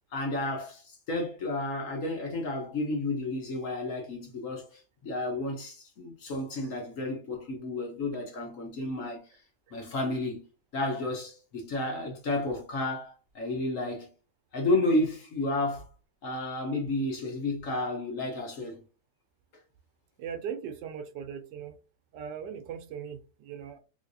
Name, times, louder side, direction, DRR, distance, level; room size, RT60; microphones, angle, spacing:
voice 1, 0.1-9.2 9.7-10.4 10.7-14.1 14.5-15.9 16.2-18.8, left 2 dB, 55° left, 1.1 m, -31 dB
voice 2, 20.2-21.8 22.1-23.8, right 7 dB, 80° right, 1.3 m, -39 dB
3.3 x 3.2 x 2.6 m
omnidirectional pair, 1.9 m